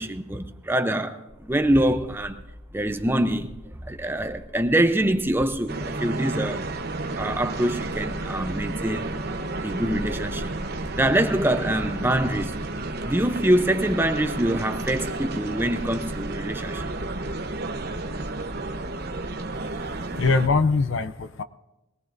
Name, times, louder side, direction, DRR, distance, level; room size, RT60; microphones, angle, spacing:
voice 1, 0.0-2.4 2.7-6.6 7.2-10.5 11.0-12.6 13.0-16.9, right 1 dB, 10° right, 0.6 m, -25 dB
sound 1, 1.3-20.7, left 1 dB, 10° left, 0.9 m, -41 dB
sound 2, 5.7-20.5, right 2 dB, 50° right, 0.9 m, -32 dB
voice 2, 19.5-21.4, left 4 dB, 70° left, 0.5 m, -24 dB
22.5 x 18.5 x 2.6 m
head